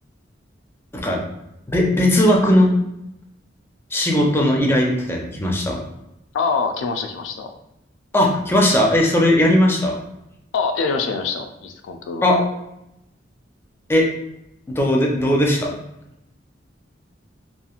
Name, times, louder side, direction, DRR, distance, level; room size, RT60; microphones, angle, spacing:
voice 1, 1.7-2.7 3.9-5.8 8.1-10.0 12.2-12.4 13.9-14.1 14.7-15.7, left 1 dB, 15° left, -1 dB, 0.4 m, -17 dB
voice 2, 6.3-7.5 10.5-12.4, left 5 dB, 85° left, 5 dB, 0.3 m, -25 dB
2.9 x 2.4 x 2.3 m, 0.85 s
head